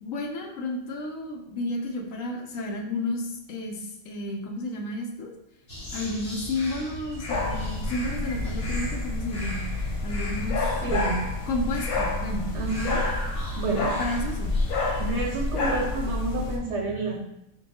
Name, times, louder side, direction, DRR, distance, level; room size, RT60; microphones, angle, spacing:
voice 1, 0.0-5.3 5.9-9.7 10.0-10.8 11.5-12.5 13.6-14.6, left 2 dB, 70° left, 2 dB, 1.0 m, -32 dB
sound 1, 5.7-15.0, left 1 dB, 45° left, 1.5 m, -38 dB
sound 2, 7.3-16.6, left 2 dB, 90° left, 1.2 m, -29 dB
voice 2, 10.8-11.2 12.5-13.1 13.5-13.9 15.0-17.2, right 3 dB, 65° right, 0 dB, 0.8 m, -29 dB
6.1 x 2.3 x 2.8 m, 0.80 s
omnidirectional pair, 1.5 m